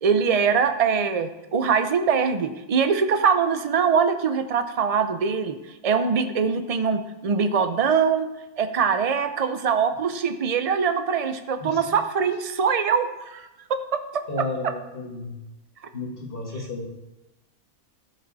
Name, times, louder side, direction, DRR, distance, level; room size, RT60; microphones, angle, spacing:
voice 1, 0.0-5.6 5.8-8.3 8.6-13.5 14.1-14.2, right 6 dB, 45° right, 9 dB, 0.5 m, -23 dB
voice 2, 11.6-12.3 14.3-15.4 15.9-16.9, left 2 dB, 40° left, -1 dB, 1.9 m, -33 dB
13.0 x 7.4 x 4.1 m, 1.0 s
omnidirectional pair, 1.5 m